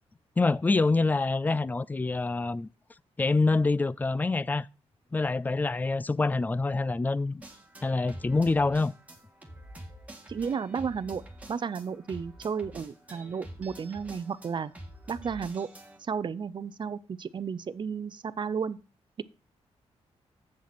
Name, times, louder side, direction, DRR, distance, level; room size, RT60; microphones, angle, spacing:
voice 1, 0.4-2.7 3.2-4.7 5.1-7.4 7.8-8.9, left 3 dB, 15° left, 0.3 m, -26 dB
sound 1, 7.4-16.0, right 1 dB, 10° right, 1.9 m, -47 dB
voice 2, 10.3-11.2 11.5-14.7 15.1-15.7 16.0-18.8, right 6 dB, 40° right, 0.5 m, -33 dB
7.6 x 7.4 x 4.1 m
cardioid pair, 100°, 12 cm